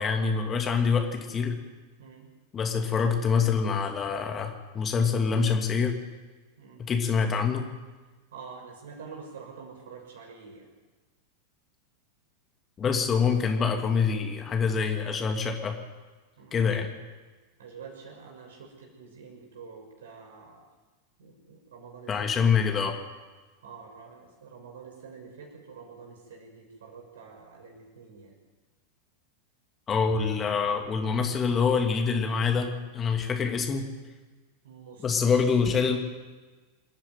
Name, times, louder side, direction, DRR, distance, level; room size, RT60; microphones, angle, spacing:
voice 1, 0.0-1.6 2.5-6.0 6.9-7.7 12.8-15.8 16.5-16.9 22.1-22.9 29.9-33.9 35.0-36.0, left 5 dB, 25° left, 3 dB, 2.6 m, -25 dB
voice 2, 2.0-2.3 6.6-6.8 8.3-10.7 16.4-16.6 17.6-20.7 21.2-22.5 23.6-28.4 34.6-35.3, right 5 dB, 60° right, 2 dB, 6.3 m, -47 dB
28.0 x 10.5 x 9.4 m, 1.3 s
figure-of-eight pair, 90°, 0 cm